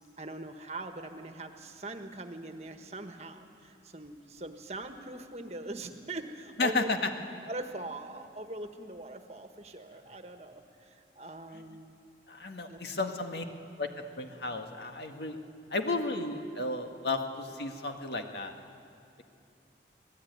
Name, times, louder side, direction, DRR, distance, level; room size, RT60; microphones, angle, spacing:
voice 1, 0.2-6.9 7.5-11.9 12.7-12.8, right 2 dB, 35° right, 6 dB, 1.4 m, -42 dB
voice 2, 6.6-7.1 12.3-13.4 13.8-13.9 14.2-15.4 15.7-18.5, left 3 dB, 70° left, 5 dB, 1.7 m, -33 dB
25.5 x 18.0 x 9.5 m, 2.6 s
head